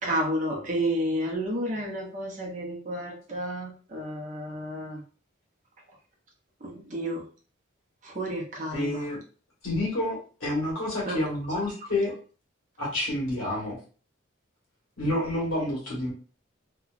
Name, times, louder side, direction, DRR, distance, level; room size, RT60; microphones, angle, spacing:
voice 1, 0.0-5.0 6.6-7.3 8.0-9.1 11.1-11.2, equal, 35° right, -1 dB, 0.7 m, -31 dB
voice 2, 8.7-9.2 9.6-12.1 12.8-13.8 15.0-16.1, left 1 dB, 85° left, -4 dB, 1.4 m, -29 dB
2.9 x 2.2 x 2.4 m, 0.38 s
head